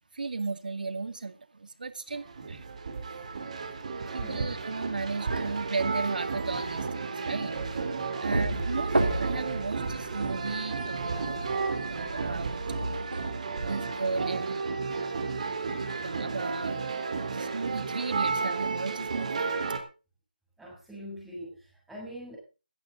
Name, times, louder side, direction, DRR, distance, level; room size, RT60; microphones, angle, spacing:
voice 1, 0.1-2.6 4.1-7.5 8.2-11.4 11.9-12.6 13.6-14.6 16.0-16.9 17.2-19.5, right 4 dB, 60° right, 2.2 m, -35 dB
sound 1, 2.1-19.8, right 4 dB, 45° right, 4.0 m, -33 dB
sound 2, 8.3-13.3, right 2 dB, 80° right, 3.7 m, -32 dB
voice 2, 20.6-22.4, equal, 5° right, 6.7 m, -43 dB
15.5 x 14.0 x 3.9 m
figure-of-eight pair, 155°, 5 cm